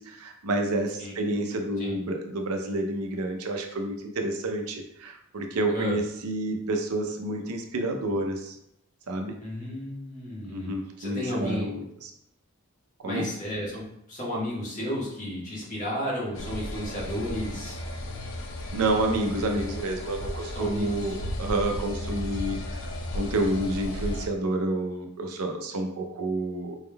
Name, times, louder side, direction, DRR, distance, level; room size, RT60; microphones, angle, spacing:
voice 1, 0.0-8.6 9.1-9.4 10.5-12.1 13.0-13.3 18.7-22.8 23.1-26.8, right 1 dB, 85° right, 3 dB, 0.6 m, -29 dB
voice 2, 1.0-1.3 1.8-2.0 5.7-6.0 9.4-10.7 11.0-11.6 13.0-17.8 20.5-21.1, equal, 35° left, -7 dB, 1.4 m, -33 dB
sound 1, 16.3-24.3, left 1 dB, 60° left, 0.5 m, -35 dB
4.3 x 3.5 x 2.2 m, 0.76 s
head